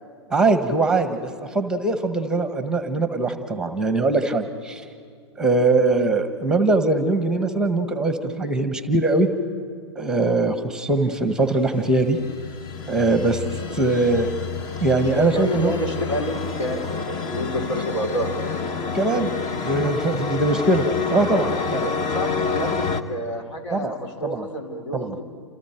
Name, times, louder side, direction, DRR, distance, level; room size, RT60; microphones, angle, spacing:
voice 1, 0.3-4.8 5.4-9.3 10.0-12.2 12.9-13.4 13.7-14.3 14.8-15.7 18.9-19.3 19.6-21.8 23.7-23.9 24.2-24.5 24.9-25.1, right 2 dB, 5° right, 8 dB, 1.4 m, -21 dB
sound 1, 11.4-23.0, left 5 dB, 30° left, 1.1 m, -29 dB
voice 2, 14.8-18.3 21.4-25.2, equal, 80° left, 2 dB, 4.0 m, -29 dB
29.0 x 27.5 x 4.6 m, 2.1 s
hypercardioid pair, 115°, 15 cm